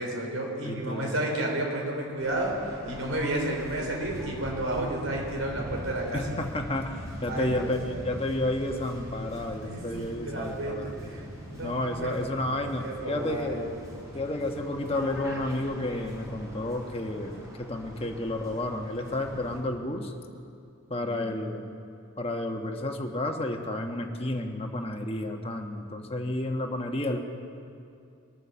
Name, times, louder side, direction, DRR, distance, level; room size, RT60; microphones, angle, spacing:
voice 1, 0.0-6.4 7.3-8.0 9.6-11.2 11.5-12.2 12.6-13.7 21.0-21.2, right 1 dB, 75° right, 0 dB, 3.9 m, -32 dB
voice 2, 0.6-1.3 6.1-7.8 8.0-10.9 11.6-13.6 14.1-20.1 20.9-21.7 22.2-27.2, left 1 dB, 25° left, 3 dB, 1.2 m, -31 dB
Waves surf, 2.2-19.6, equal, 15° right, 4.3 m, -42 dB
22.5 x 9.3 x 7.0 m, 2.5 s
head